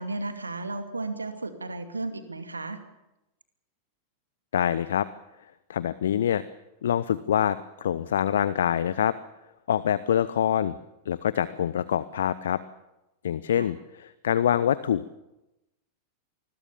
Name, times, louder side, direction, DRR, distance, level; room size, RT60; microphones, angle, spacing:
voice 1, 0.0-2.8 13.5-13.7, right 2 dB, 80° right, 8 dB, 2.5 m, -34 dB
voice 2, 4.5-5.1 5.7-6.4 6.8-9.1 9.7-10.7 11.1-12.6 13.2-15.0, left 9 dB, 65° left, 17 dB, 0.8 m, -25 dB
27.0 x 21.0 x 7.2 m, 0.96 s
figure-of-eight pair, 90°, 0 cm